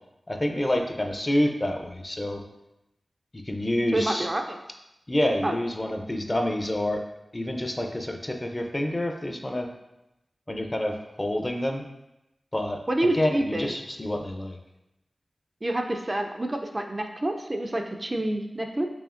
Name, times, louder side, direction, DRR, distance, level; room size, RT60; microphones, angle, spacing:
voice 1, 0.3-2.4 3.5-4.3 5.1-7.0 7.3-9.7 10.5-11.8 12.5-12.8 13.1-14.6, left 1 dB, 30° left, 4 dB, 0.5 m, -27 dB
voice 2, 3.9-4.6 5.4-5.6 12.9-13.7 15.6-18.9, right 1 dB, 35° right, 4 dB, 0.4 m, -28 dB
5.0 x 2.7 x 2.5 m, 0.90 s
cardioid pair, 45°, 0 cm